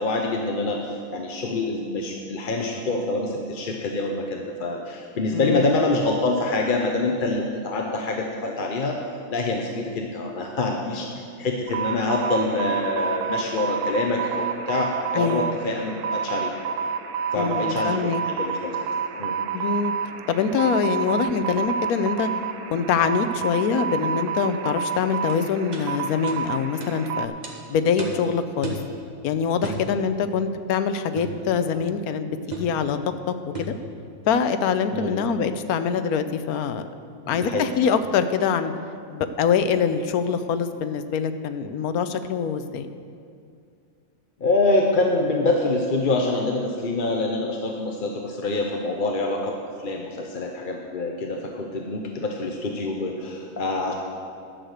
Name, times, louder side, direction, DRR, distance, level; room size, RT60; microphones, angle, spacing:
voice 1, 0.0-9.0 9.3-11.1 11.4-16.5 17.3-18.0 18.2-18.8 19.2-19.4 34.9-35.3 37.3-37.7 44.4-53.9, left 2 dB, 40° left, 1 dB, 0.8 m, -25 dB
voice 2, 5.3-5.8 15.1-15.5 17.4-18.2 19.5-19.9 20.3-22.3 22.7-27.3 27.7-28.8 29.2-33.0 33.6-33.7 34.3-36.9 37.3-38.7 39.1-42.9, left 6 dB, 75° left, 10 dB, 1.1 m, -24 dB
sound 1, 11.7-27.3, right 6 dB, 80° right, 1.1 m, -29 dB
sound 2, 25.3-25.4 25.7-25.9 26.3-26.4 26.8-27.0 27.4-27.6 28.0-28.2 28.6-28.9 29.6-29.9 31.2-31.4 32.5-32.8 33.5-33.8, right 3 dB, 30° right, 1.5 m, -33 dB
11.5 x 6.6 x 7.9 m, 2.4 s
omnidirectional pair, 1.7 m